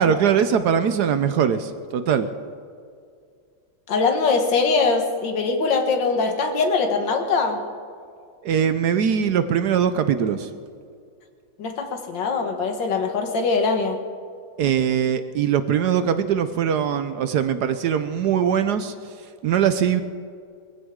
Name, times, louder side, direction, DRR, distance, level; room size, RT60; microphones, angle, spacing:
voice 1, 0.0-2.3 8.4-10.5 14.6-18.9 19.4-20.0, right 8 dB, 70° right, 11 dB, 1.1 m, -21 dB
voice 2, 3.9-7.6 11.6-14.0, left 4 dB, 75° left, 5 dB, 2.0 m, -22 dB
21.0 x 15.5 x 3.7 m, 2.3 s
omnidirectional pair, 2.1 m